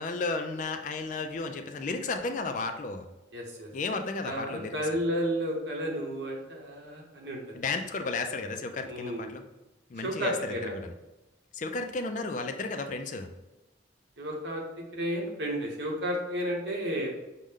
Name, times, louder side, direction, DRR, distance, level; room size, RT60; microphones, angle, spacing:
voice 1, 0.0-3.0 3.7-4.8 7.5-9.4 9.9-10.9 11.5-13.3, left 3 dB, 40° left, 6 dB, 0.4 m, -33 dB
voice 2, 3.3-3.7 4.2-7.6 8.8-9.3 10.0-10.7 14.2-14.6 14.9-17.1, equal, 65° right, -2 dB, 1.1 m, -32 dB
6.2 x 2.2 x 3.6 m, 1.0 s
head